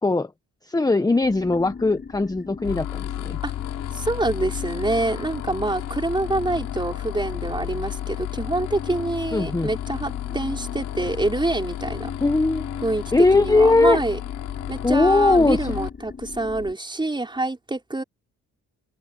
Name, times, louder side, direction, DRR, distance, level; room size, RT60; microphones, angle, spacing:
voice 1, 0.7-3.4 9.3-9.7 12.2-12.6 13.1-14.0 14.8-15.9, left 3 dB, 10° left, 1.1 m, -20 dB
sound 1, 1.2-16.7, left 5 dB, 35° left, 6.9 m, -39 dB
sound 2, 2.6-15.9, left 14 dB, 90° left, 4.7 m, -33 dB
voice 2, 3.9-12.1 12.8-14.2 14.7-18.0, right 2 dB, 15° right, 5.1 m, -26 dB
open air
cardioid pair, 90°, 30 cm